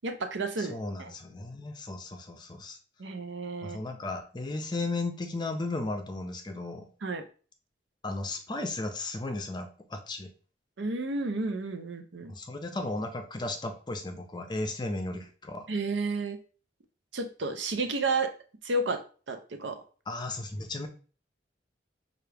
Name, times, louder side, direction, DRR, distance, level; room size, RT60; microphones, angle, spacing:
voice 1, 0.0-1.1 3.0-3.8 7.0-7.2 10.8-12.3 15.7-16.4 17.1-18.3 18.6-19.8, right 3 dB, 90° right, 7 dB, 0.7 m, -32 dB
voice 2, 0.6-2.8 3.6-6.9 8.0-10.3 12.3-15.7 20.1-20.9, left 2 dB, 25° left, 6 dB, 0.5 m, -35 dB
5.7 x 2.5 x 3.3 m, 0.39 s
head